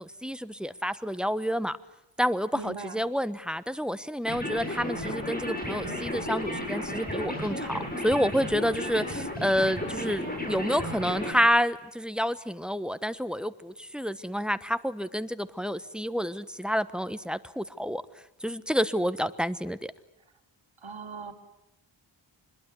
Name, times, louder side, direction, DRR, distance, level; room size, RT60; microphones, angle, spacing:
voice 1, 0.0-1.8 2.2-18.0 18.4-19.9, equal, ahead, 14 dB, 1.2 m, -29 dB
voice 2, 2.5-3.0 20.8-21.3, right 5 dB, 70° right, 3 dB, 3.6 m, -39 dB
sound 1, 4.2-11.3, left 1 dB, 20° left, 7.9 m, -33 dB
25.5 x 22.0 x 9.8 m, 0.83 s
wide cardioid pair, 70°, 49 cm